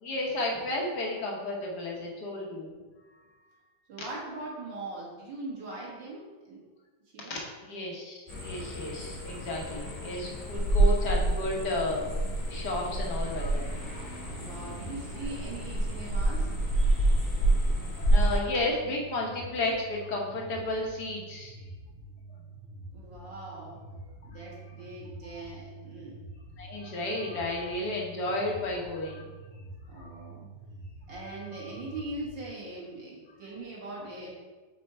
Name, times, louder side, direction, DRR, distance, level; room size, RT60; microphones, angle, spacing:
voice 1, 0.0-2.7 7.3-12.1 12.5-14.5 18.0-21.5 24.3-24.4 26.6-29.3 29.9-30.1 31.5-31.8, left 2 dB, 65° left, -2 dB, 1.6 m, -33 dB
voice 2, 3.9-6.6 7.1-7.4 14.3-16.5 17.5-18.2 22.9-23.8 24.3-26.1 29.9-30.5 31.1-34.3, right 2 dB, 80° right, -5 dB, 2.4 m, -41 dB
sound 1, 8.3-18.4, right 1 dB, 35° left, 2.4 m, -28 dB
sound 2, 13.4-32.4, right 2 dB, 35° right, 0.9 m, -47 dB
5.4 x 4.4 x 4.3 m, 1.3 s
omnidirectional pair, 2.0 m